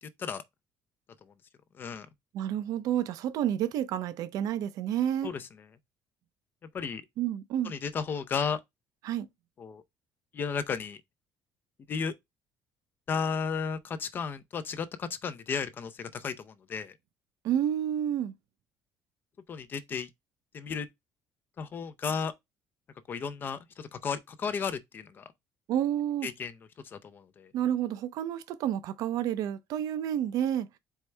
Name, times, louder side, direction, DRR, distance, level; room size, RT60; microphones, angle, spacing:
voice 1, 0.0-0.4 1.8-2.1 5.2-5.4 6.7-7.0 7.6-8.6 9.6-9.8 10.3-11.0 11.9-12.1 13.1-16.9 19.5-20.1 20.5-20.9 21.6-22.3 23.1-25.2 26.2-26.5 26.9-27.5, left 6 dB, 30° left, 0.5 m, -34 dB
voice 2, 2.3-5.3 7.2-7.7 9.0-9.3 17.4-18.3 25.7-26.3 27.5-30.7, right 10 dB, 60° right, 0.6 m, -30 dB
4.6 x 3.2 x 3.3 m
cardioid pair, 175°, 7 cm